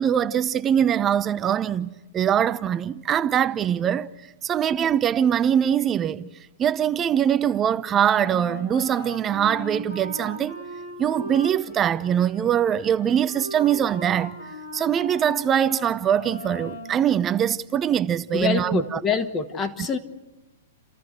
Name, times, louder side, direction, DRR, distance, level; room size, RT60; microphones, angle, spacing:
voice 1, 0.0-4.1 4.4-6.3 6.6-10.6 11.0-14.3 14.7-19.0, right 9 dB, 25° right, 0.8 m, -22 dB
Wind instrument woodwind instrument, 8.1-17.0, equal, 55° left, 7.6 m, -38 dB
voice 2, 18.3-20.0, left 5 dB, 25° left, 1.7 m, -25 dB
30.0 x 14.0 x 8.1 m
hypercardioid pair, 120°, 0 cm